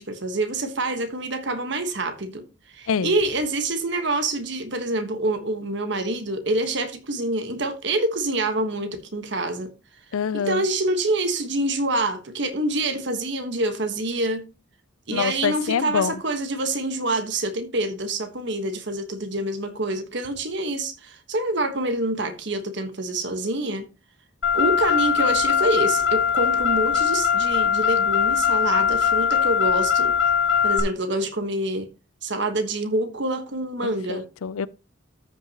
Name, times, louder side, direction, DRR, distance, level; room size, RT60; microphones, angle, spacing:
voice 1, 0.0-2.4 2.7-9.7 10.4-14.4 15.1-23.9 24.5-30.1 30.6-31.9 32.2-34.2, right 2 dB, 55° right, 1.3 m, -26 dB
voice 2, 10.1-10.7 15.1-16.2 33.8-34.7, left 6 dB, 85° left, 0.5 m, -26 dB
Car, 24.4-30.8, left 7 dB, 60° left, 2.3 m, -21 dB
13.5 x 5.8 x 2.9 m
head